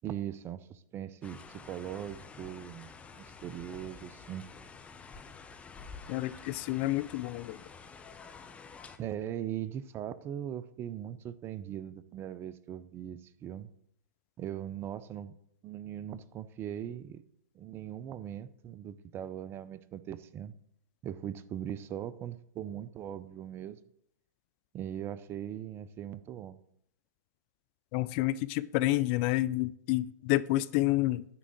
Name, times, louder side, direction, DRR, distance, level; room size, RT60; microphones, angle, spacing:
voice 1, 0.0-4.5 9.0-13.7 14.4-15.3 15.6-17.2 17.5-20.5 21.0-23.8 24.7-26.6, right 10 dB, 25° right, 0.4 m, -40 dB
sound 1, 1.2-9.0, left 5 dB, 15° left, 0.7 m, -49 dB
voice 2, 6.1-7.6 27.9-31.3, left 17 dB, 40° left, 0.4 m, -29 dB
9.7 x 3.7 x 7.2 m
hypercardioid pair, 115°, 10 cm